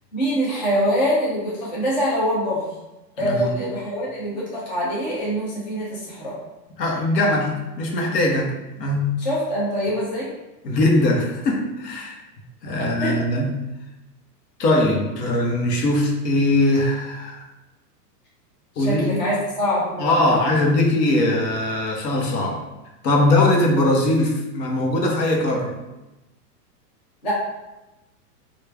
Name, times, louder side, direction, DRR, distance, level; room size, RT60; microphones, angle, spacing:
voice 1, 0.1-2.7 3.2-6.4 9.2-10.3 12.8-13.2 18.8-20.6 27.2-27.3, equal, 30° left, -6 dB, 0.4 m, -24 dB
voice 2, 3.2-3.5 6.8-9.1 10.6-12.2 12.6-13.5 14.6-17.4 18.8-19.2 20.0-22.7 23.0-25.8, left 1 dB, 80° left, 0 dB, 1.0 m, -21 dB
3.3 x 2.4 x 3.3 m, 1.0 s
supercardioid pair, 175°, 49 cm